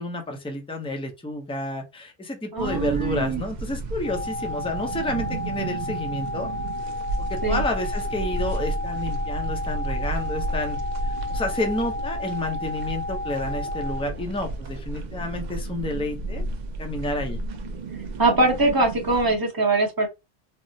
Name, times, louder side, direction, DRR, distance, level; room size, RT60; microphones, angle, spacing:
voice 1, 0.0-6.5 7.3-10.8 11.0-16.4 16.8-17.4, left 1 dB, 10° left, 0.4 m, -30 dB
voice 2, 2.5-3.4 7.4-7.6 18.2-20.1, right 2 dB, 20° right, 0.8 m, -22 dB
sound 1, 2.6-19.4, right 2 dB, 55° right, 0.5 m, -32 dB
sound 2, 4.0-14.0, left 2 dB, 65° left, 1.0 m, -32 dB
3.5 x 2.0 x 2.7 m
omnidirectional pair, 1.1 m